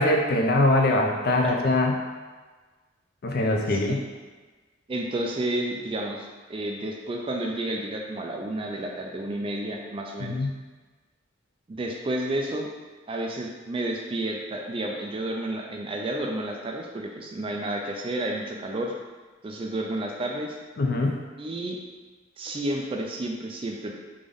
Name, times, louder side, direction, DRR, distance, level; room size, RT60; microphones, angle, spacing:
voice 1, 0.0-2.0 3.2-4.0 10.2-10.5 20.8-21.2, left 2 dB, 50° left, 2 dB, 0.4 m, -22 dB
voice 2, 3.7-4.0 4.9-10.4 11.7-12.7 13.1-18.9 19.4-20.6 21.4-21.8 22.4-23.9, right 1 dB, 25° right, 1 dB, 0.3 m, -31 dB
3.6 x 2.5 x 3.3 m, 1.3 s
head